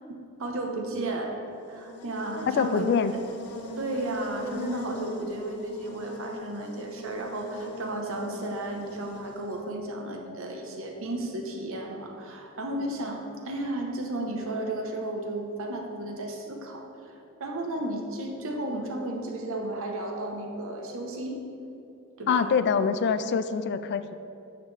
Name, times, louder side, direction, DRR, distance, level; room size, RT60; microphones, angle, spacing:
voice 1, 0.1-1.4 1.7-2.9 3.8-16.9 17.4-21.4 22.2-22.5, right 2 dB, 65° right, 2 dB, 1.0 m, -33 dB
Buzz, 1.5-9.7, left 2 dB, 75° left, 0.7 m, -42 dB
voice 2, 2.5-3.1 22.3-24.1, left 6 dB, 50° left, 12 dB, 0.4 m, -25 dB
9.5 x 7.2 x 3.3 m, 2.7 s
head